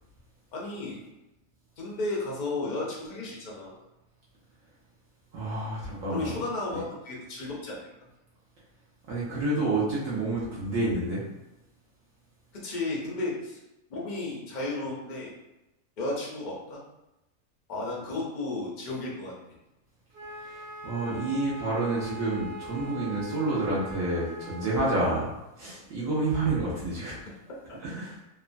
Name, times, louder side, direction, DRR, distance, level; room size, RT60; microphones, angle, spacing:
voice 1, 0.5-0.9 1.8-3.8 6.1-7.9 12.6-13.6 13.9-15.3 16.0-16.8 17.7-19.3, left 2 dB, 70° left, -3 dB, 0.4 m, -33 dB
voice 2, 5.3-6.3 6.7-6.8 9.1-11.2 20.4-27.2 27.8-28.2, right 2 dB, 70° right, -6 dB, 1.0 m, -29 dB
Wind instrument woodwind instrument, 20.1-24.9, equal, 30° right, 0.4 m, -41 dB
2.9 x 2.1 x 2.5 m, 0.94 s
omnidirectional pair, 1.5 m